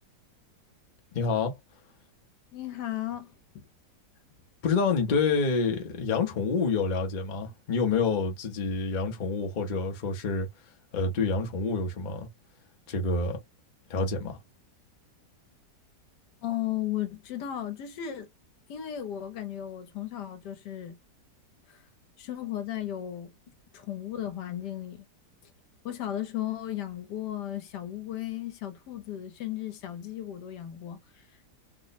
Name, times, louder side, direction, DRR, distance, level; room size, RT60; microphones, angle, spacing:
voice 1, 1.1-1.5 4.6-10.5 10.9-12.3 12.9-13.4 13.9-14.4, left 4 dB, 45° left, 0.6 m, -27 dB
voice 2, 2.5-3.7 5.1-5.2 16.4-18.3 18.7-21.0 21.7-21.8 22.2-23.3 23.7-25.1 25.4-25.5 25.8-31.3, left 12 dB, 75° left, 1.3 m, -35 dB
3.1 x 2.0 x 4.0 m
omnidirectional pair, 1.9 m